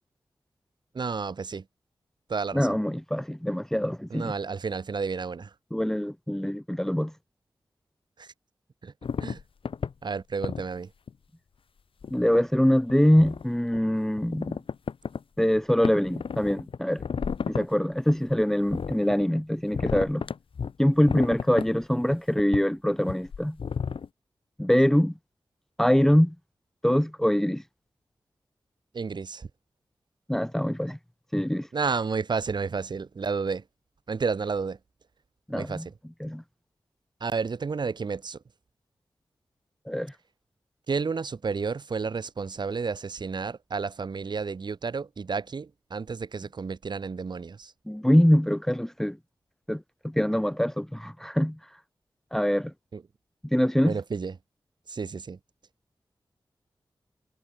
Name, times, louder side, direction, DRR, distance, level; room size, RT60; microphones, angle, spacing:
voice 1, 0.9-1.6 2.3-2.8 4.1-5.5 8.2-8.3 8.8-8.9 9.2-9.4 10.0-10.9 28.9-29.5 31.7-33.6 34.1-34.8 35.5-35.8 37.2-38.4 40.9-47.7 52.9-53.0 53.8-54.3 54.9-55.4, right 5 dB, 55° right, 1.5 m, -31 dB
voice 2, 2.5-4.3 5.7-7.1 12.1-14.6 15.4-17.0 17.5-20.3 20.8-23.6 24.6-25.1 25.8-26.3 26.8-27.6 30.3-31.0 31.3-31.7 35.5-35.9 36.2-36.4 39.9-40.1 47.9-49.2 49.7-51.6 52.3-52.7 53.4-53.9, equal, 5° left, 0.8 m, -24 dB
sound 1, 9.0-9.9 10.4-10.7 11.1-11.2 12.0-12.4 12.9-13.4 13.7-13.8 14.2-15.2 15.5-15.6 15.8-17.6 18.1-19.2 19.7-20.7 21.1-22.0 22.4-22.6 23.1-24.1, left 6 dB, 90° left, 2.4 m, -32 dB
wide cardioid pair, 120°, 9 cm